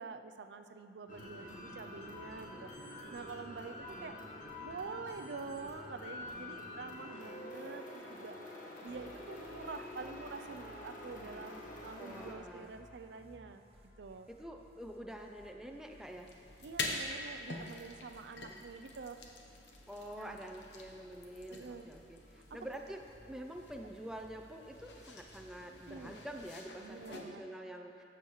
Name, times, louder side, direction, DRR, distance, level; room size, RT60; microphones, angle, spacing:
voice 1, 0.0-8.4 8.8-13.6 14.0-14.3 16.6-19.2 20.2-20.4 21.5-21.9 22.5-22.6 25.9-26.2 26.8-27.5, right 4 dB, 70° right, 8 dB, 0.4 m, -47 dB
sound 1, 1.1-12.3, left 1 dB, 45° left, 1.1 m, -47 dB
sound 2, 8.9-26.4, right 1 dB, 35° right, 0.8 m, -61 dB
voice 2, 12.0-12.7 14.3-16.3 19.9-23.0 23.3-28.0, right 1 dB, 5° right, 3 dB, 0.4 m, -47 dB
sound 3, 16.0-27.2, left 3 dB, 75° left, 0.9 m, -46 dB
14.0 x 6.9 x 3.1 m, 2.9 s
head